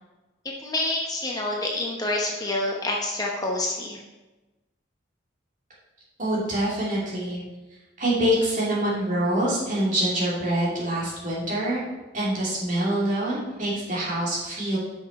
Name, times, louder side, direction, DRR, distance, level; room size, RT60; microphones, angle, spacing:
voice 1, 0.6-4.0, left 2 dB, 20° left, -1 dB, 0.8 m, -27 dB
voice 2, 6.2-7.4 8.0-11.8 12.1-14.8, right 1 dB, 40° right, -6 dB, 2.6 m, -25 dB
6.0 x 5.9 x 5.3 m, 1.1 s
head